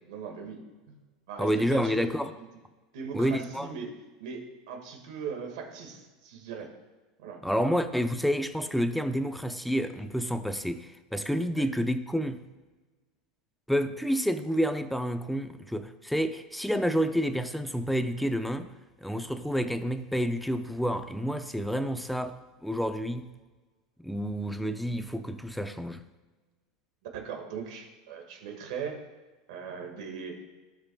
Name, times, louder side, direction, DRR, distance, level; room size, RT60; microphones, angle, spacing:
voice 1, 0.1-1.0 1.3-2.2 2.9-3.9 4.2-6.7 7.2-7.4 11.6-11.7 27.1-29.0 29.5-30.4, right 6 dB, 75° right, 2 dB, 2.0 m, -39 dB
voice 2, 1.4-2.3 3.1-3.7 7.4-12.4 13.7-18.7 19.0-23.3 24.0-26.0, equal, ahead, 9 dB, 0.5 m, -29 dB
16.5 x 5.5 x 2.4 m, 1.3 s
supercardioid pair, 140°, 4 cm